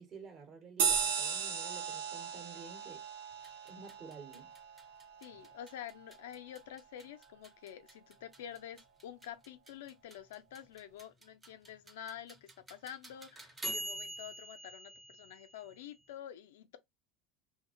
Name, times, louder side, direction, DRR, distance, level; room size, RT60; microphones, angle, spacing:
voice 1, 0.0-3.1 3.7-4.5, right 5 dB, 45° right, 1.0 m, -51 dB
sound 1, 0.8-5.7, right 7 dB, 80° right, 0.5 m, -36 dB
sound 2, 3.3-16.1, right 1 dB, 20° right, 0.6 m, -48 dB
voice 2, 5.2-16.8, left 10 dB, 80° left, 0.3 m, -48 dB
2.4 x 2.0 x 2.6 m
hypercardioid pair, 80°, 0 cm